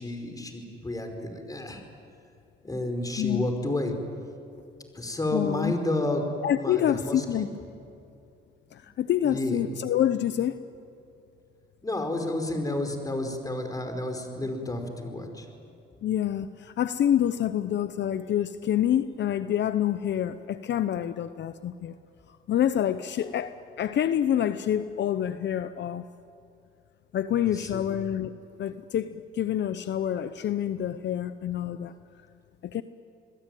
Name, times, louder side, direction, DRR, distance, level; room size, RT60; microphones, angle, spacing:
voice 1, 0.0-1.8 2.6-3.9 4.9-6.2 6.6-7.5 9.2-9.6 11.8-15.5 23.2-23.4 27.5-27.8, left 1 dB, 20° left, 5 dB, 5.1 m, -31 dB
voice 2, 5.3-5.7 6.4-7.5 8.7-10.6 16.0-22.0 22.3-26.1 27.1-28.3 28.6-31.9 32.6-32.8, left 10 dB, 65° left, 11 dB, 0.8 m, -27 dB
27.5 x 21.5 x 9.3 m, 2.6 s
cardioid pair, 90°, 20 cm